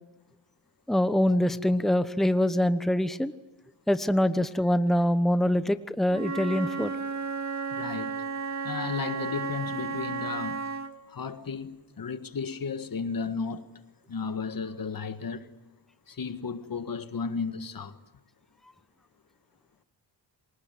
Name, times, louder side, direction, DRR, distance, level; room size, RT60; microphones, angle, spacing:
voice 1, 0.9-3.3 3.9-6.9, left 1 dB, ahead, 1.1 m, -24 dB
Wind instrument woodwind instrument, 6.1-10.9, right 4 dB, 40° right, 2.3 m, -33 dB
voice 2, 7.7-8.1 8.6-10.7 11.1-13.7 14.1-15.5 16.1-18.0, left 5 dB, 50° left, 1.7 m, -34 dB
27.0 x 18.5 x 9.4 m
cardioid pair, 60°, 43 cm